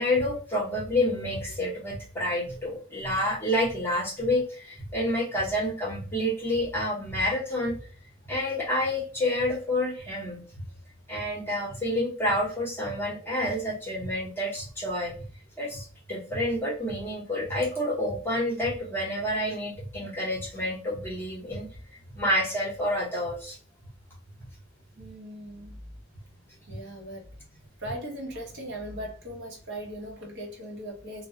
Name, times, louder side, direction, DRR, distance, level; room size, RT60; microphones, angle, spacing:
voice 1, 0.0-7.8 8.3-10.4 11.1-15.2 15.6-21.6 22.1-23.6 26.7-26.8, left 1 dB, 10° left, 0.8 m, -28 dB
voice 2, 25.0-25.9 26.7-31.3, right 1 dB, 55° right, 0.8 m, -39 dB
2.2 x 2.0 x 2.8 m
head